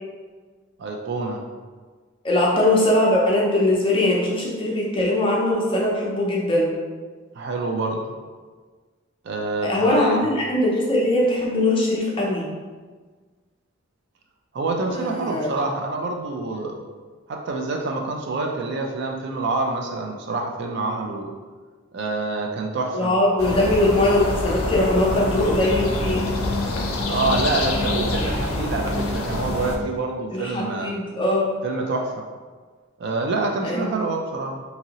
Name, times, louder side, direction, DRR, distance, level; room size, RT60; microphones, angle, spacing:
voice 1, 0.8-1.4 7.3-8.0 9.2-10.2 14.5-16.8 17.3-21.4 21.9-23.1 27.1-30.9 31.6-32.2 33.0-34.6, right 3 dB, 55° right, 1 dB, 0.3 m, -26 dB
voice 2, 2.2-6.7 9.6-12.5 14.9-15.5 22.9-26.3 30.3-31.5 33.6-33.9, left 1 dB, 25° left, -4 dB, 0.5 m, -21 dB
sound 1, 23.4-29.8, left 2 dB, 80° left, 0.4 m, -26 dB
2.8 x 2.7 x 2.8 m, 1.4 s
head